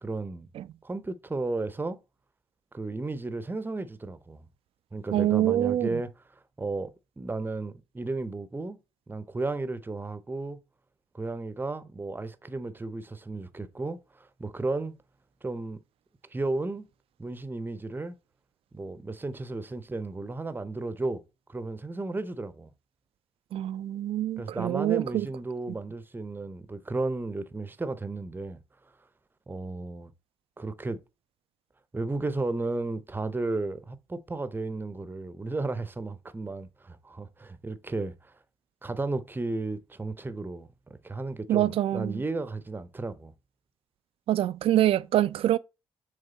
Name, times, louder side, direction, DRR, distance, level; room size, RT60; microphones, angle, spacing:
voice 1, 0.0-0.5 0.8-2.0 2.7-4.5 4.9-6.1 6.6-8.8 9.1-10.6 11.1-14.9 15.4-15.8 16.3-16.8 17.2-18.1 18.7-21.2 21.5-22.7 24.4-28.6 29.5-30.1 30.6-31.0 31.9-38.3 38.8-43.3, right 3 dB, 15° right, 0.7 m, -34 dB
voice 2, 5.1-6.0 23.5-25.3 41.5-42.2 44.3-45.6, right 13 dB, 50° right, 0.4 m, -25 dB
6.7 x 3.5 x 4.0 m
figure-of-eight pair, 45°, 12 cm